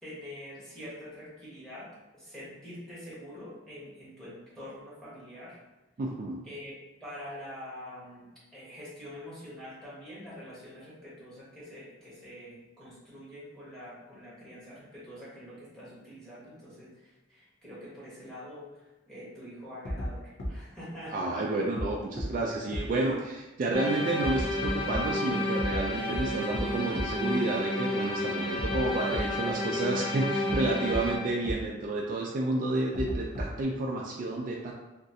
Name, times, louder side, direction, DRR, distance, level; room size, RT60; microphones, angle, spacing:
voice 1, 0.0-5.6 6.4-21.1, equal, 5° left, -9 dB, 1.1 m, -45 dB
voice 2, 6.0-6.5 21.1-34.7, right 2 dB, 45° right, -2 dB, 0.3 m, -30 dB
sound 1, 19.8-20.1 20.4-20.5 21.8-21.9 22.2-22.3 22.7-22.8 24.2-25.0 25.6-25.8 26.1-26.2 26.5-26.6 26.9-27.0 28.6-28.8 29.1-29.2 30.5-30.6 30.9-31.0 31.4-31.5 32.9-33.6, equal, 70° left, 0.7 m, -32 dB
sound 2, 23.7-31.2, left 1 dB, 30° left, 0.4 m, -31 dB
3.0 x 2.5 x 2.6 m, 1.1 s
head